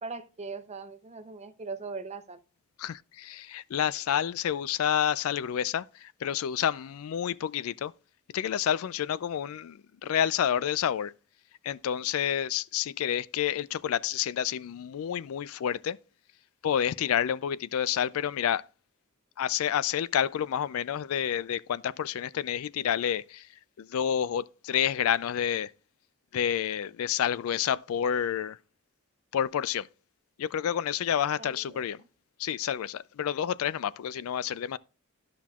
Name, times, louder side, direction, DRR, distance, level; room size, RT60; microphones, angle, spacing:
voice 1, 0.0-2.4 31.4-31.8, right 4 dB, 30° right, 0.7 m, -40 dB
voice 2, 2.8-7.9 8.3-11.1 11.6-16.0 16.6-18.7 19.4-23.5 23.8-25.7 26.3-28.6 29.3-29.9 30.4-32.0 32.4-34.8, left 9 dB, 80° left, 0.3 m, -29 dB
13.0 x 5.8 x 2.4 m
head